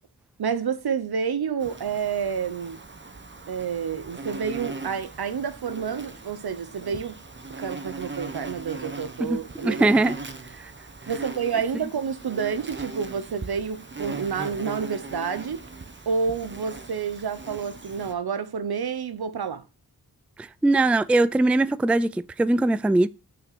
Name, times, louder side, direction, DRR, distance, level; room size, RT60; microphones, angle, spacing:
voice 1, 0.4-2.8 3.5-7.2 7.6-9.9 11.1-15.6 16.1-19.6, right 6 dB, 80° right, 1.0 m, -29 dB
Insect, 1.6-18.1, right 3 dB, 30° right, 1.3 m, -39 dB
voice 2, 9.6-10.2 10.6-10.7 20.4-23.1, right 2 dB, 5° right, 0.3 m, -21 dB
6.3 x 6.0 x 6.8 m
cardioid pair, 65°, 38 cm